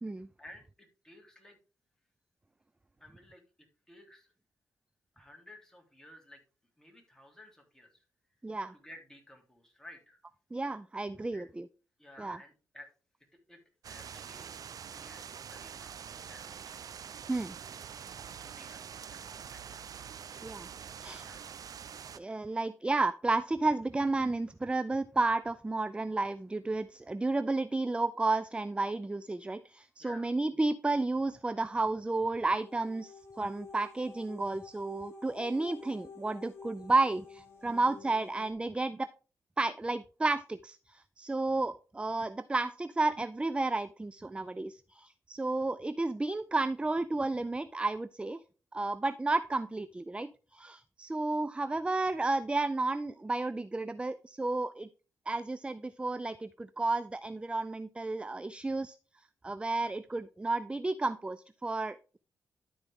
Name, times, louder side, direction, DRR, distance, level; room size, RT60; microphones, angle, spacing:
voice 1, 0.4-1.6 3.0-3.4 3.9-4.3 5.1-6.4 6.8-8.0 8.7-10.2 11.2-11.5 12.0-12.9 13.5-13.6 13.9-14.6 14.9-16.8 18.4-18.8 19.1-19.8 21.2-21.6 30.0-30.3, left 1 dB, 10° left, 1 dB, 3.4 m, -54 dB
voice 2, 8.4-8.7 10.5-11.7 12.2-12.4 17.3-17.6 20.4-20.7 21.0-21.3 22.2-39.1 39.6-48.4 48.7-54.9 55.3-59.0 59.4-62.2, right 2 dB, 15° right, 15 dB, 0.4 m, -32 dB
sound 1, 13.8-22.2, right 7 dB, 65° right, 0.6 m, -45 dB
sound 2, 32.4-38.5, left 4 dB, 40° left, 2.4 m, -50 dB
12.0 x 4.6 x 3.6 m, 0.35 s
cardioid pair, 55°, 7 cm